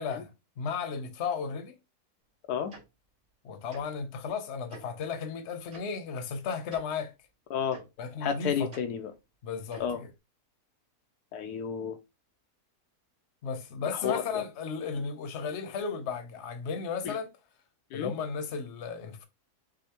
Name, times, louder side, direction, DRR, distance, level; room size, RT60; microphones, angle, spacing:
voice 1, 0.0-1.8 3.4-7.1 8.0-8.7 9.4-10.1 13.4-17.3 17.9-19.3, left 5 dB, 50° left, 1.0 m, -34 dB
Tick-tock, 2.7-2.8 3.7-3.8 4.7-4.8 5.7-5.8 6.7-6.8 7.7-7.8 8.7-8.8 9.7-9.9, right 3 dB, 55° right, 2.1 m, -47 dB
voice 2, 7.5-7.8 8.2-9.1 9.8-10.0 11.3-12.0 13.9-14.4 17.0-17.1 17.9-18.1, left 7 dB, 80° left, 1.2 m, -31 dB
6.3 x 2.8 x 2.9 m
omnidirectional pair, 1.7 m